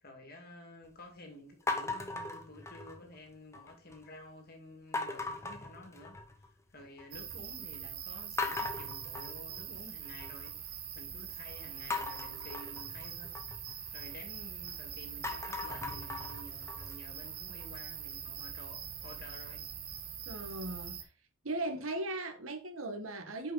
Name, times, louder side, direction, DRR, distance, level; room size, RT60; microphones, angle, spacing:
voice 1, 0.0-10.6 10.9-13.3 13.9-19.7, left 1 dB, 50° left, 2.1 m, -52 dB
sound 1, 1.7-3.1 3.5-4.1 4.9-6.5 6.8-7.4 7.7-7.8 8.4-10.5 11.9-14.7 15.1-18.0, left 3 dB, 15° left, 1.1 m, -39 dB
sound 2, 7.1-21.0, right 8 dB, 50° right, 1.3 m, -43 dB
voice 2, 20.2-21.1 21.4-23.5, right 2 dB, 75° right, 1.5 m, -38 dB
9.3 x 5.4 x 4.0 m
head